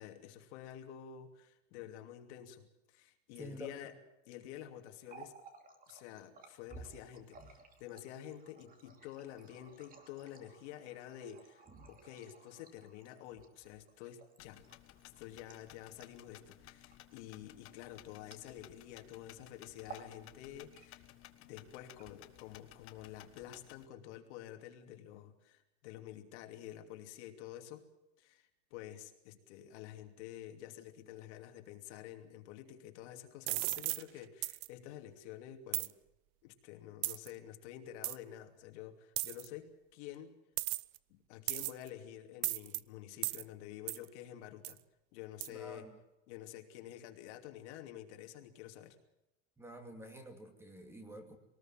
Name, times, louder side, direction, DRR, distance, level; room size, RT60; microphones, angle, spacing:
voice 1, 0.0-4.0 4.3-5.3 5.9-14.6 15.0-21.0 21.4-27.9 28.2-35.9 36.4-40.4 41.1-44.8 45.1-45.9 46.3-49.0, left 11 dB, 65° left, 5 dB, 2.9 m, -49 dB
voice 2, 3.4-3.9 45.5-46.0 49.6-51.4, equal, 5° right, 6 dB, 2.5 m, -49 dB
Water tap faucet, 4.9-18.9 19.2-19.4 19.7-20.2 20.5-21.2 21.8-22.6, right 5 dB, 25° right, 2.8 m, -57 dB
sound 1, 14.4-23.9, left 14 dB, 35° left, 1.5 m, -58 dB
sound 2, 33.5-34.0 34.4-34.7 35.7-35.9 37.0-37.3 38.0-38.2 39.2-39.5 40.6-41.0 41.5-41.9 42.4-42.8 43.2-43.4 43.9-44.0 44.6-44.8 45.4-45.5, right 21 dB, 55° right, 0.7 m, -36 dB
22.5 x 19.5 x 7.7 m, 0.93 s
supercardioid pair, 160°, 37 cm